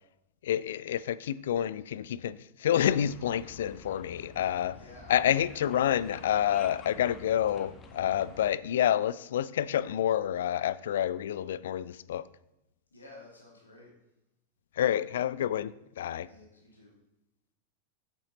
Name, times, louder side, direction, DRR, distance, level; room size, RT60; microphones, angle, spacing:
voice 1, 0.4-4.8 5.1-12.2 14.8-16.3, left 10 dB, 60° left, 0.3 m, -28 dB
sound 1, 2.8-8.5, left 3 dB, 25° left, 1.1 m, -50 dB
voice 2, 4.7-5.1 12.9-13.9 16.3-16.9, left 2 dB, 75° left, 2.3 m, -52 dB
8.3 x 8.2 x 4.0 m
figure-of-eight pair, 90°, 0 cm